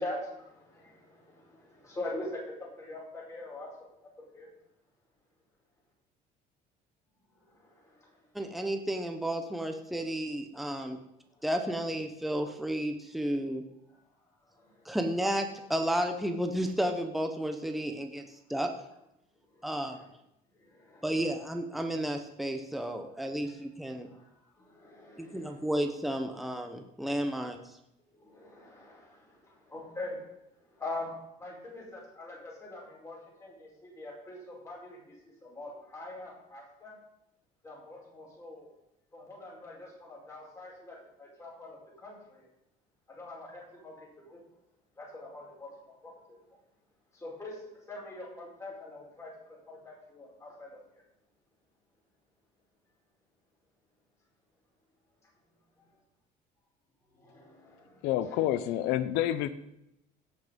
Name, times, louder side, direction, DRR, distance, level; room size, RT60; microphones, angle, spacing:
voice 1, 0.0-4.1 4.3-4.5 7.4-8.2 11.3-11.5 13.9-14.0 14.5-15.0 19.5-20.1 20.6-21.3 23.4-23.6 23.9-24.3 24.5-25.6 28.1-30.2 30.6-31.1 31.4-37.0 37.6-38.7 39.1-42.5 43.1-44.4 45.0-45.7 46.0-46.1 47.1-51.0 55.8-55.9 57.1-58.1, left 2 dB, 15° left, -3 dB, 4.8 m, -44 dB
voice 2, 8.3-11.0 11.4-13.6 14.8-18.2 18.5-18.7 19.6-20.0 21.0-24.1 25.2-27.6, right 1 dB, ahead, 5 dB, 0.9 m, -32 dB
voice 3, 58.0-59.5, left 12 dB, 90° left, 14 dB, 0.8 m, -28 dB
17.0 x 6.0 x 5.3 m, 0.84 s
cardioid pair, 140°, 17 cm